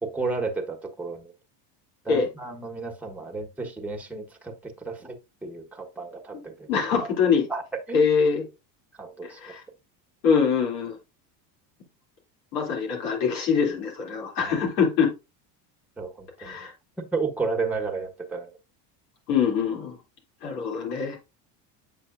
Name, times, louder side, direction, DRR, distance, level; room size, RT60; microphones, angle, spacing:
voice 1, 0.0-1.3 2.0-5.2 5.4-6.7 7.5-7.6 7.9-8.0 9.0-9.6 14.4-14.5 16.0-16.7 17.1-18.5, right 4 dB, 5° right, 3 dB, 1.2 m, -32 dB
voice 2, 6.7-7.5 7.9-8.5 9.2-9.6 10.2-11.0 12.5-15.1 16.4-16.7 19.3-20.0 20.4-21.2, left 6 dB, 85° left, 0 dB, 3.0 m, -24 dB
8.2 x 6.0 x 2.5 m, 0.27 s
supercardioid pair, 90°, 50 cm